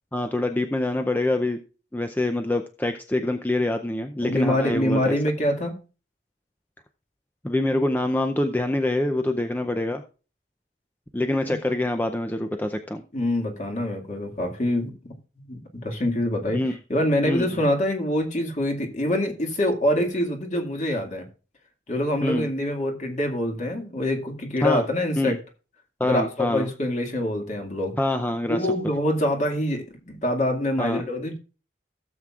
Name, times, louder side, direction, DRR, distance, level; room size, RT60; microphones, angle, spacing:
voice 1, 0.1-1.6 1.9-5.2 7.4-10.0 11.1-13.0 16.5-16.8 17.2-17.5 22.2-22.5 24.6-24.8 25.2-25.4 26.0-26.7 28.0-28.7 30.8-31.0, left 1 dB, 10° left, 0.5 m, -25 dB
voice 2, 4.2-5.8 11.4-11.6 13.1-21.3 21.9-25.4 26.0-28.0 28.5-31.4, left 1 dB, 40° left, 2.0 m, -25 dB
16.0 x 7.5 x 2.4 m
head